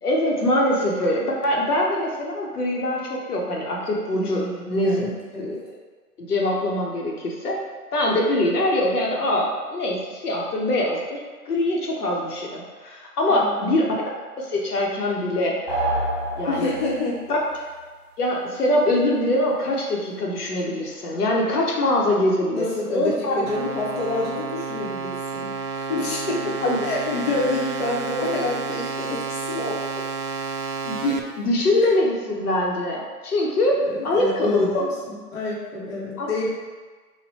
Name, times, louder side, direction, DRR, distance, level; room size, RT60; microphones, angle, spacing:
voice 1, 0.0-5.0 5.4-5.7 6.2-7.6 7.9-13.9 14.4-15.6 16.4-16.7 17.3-17.4 18.2-23.3 26.6-26.8 30.8-34.8 36.2-36.3, left 1 dB, 70° left, -2 dB, 0.9 m, -23 dB
voice 2, 4.1-5.6 13.3-13.8 16.5-17.2 22.5-25.6 25.9-29.8 33.8-36.5, left 2 dB, 40° left, -5 dB, 0.8 m, -28 dB
sound 1, 15.7-17.2, right 1 dB, 5° left, 0.8 m, -27 dB
sound 2, 23.5-31.2, right 4 dB, 80° right, 0.7 m, -30 dB
3.2 x 2.2 x 4.1 m, 1.4 s
hypercardioid pair, 150°, 47 cm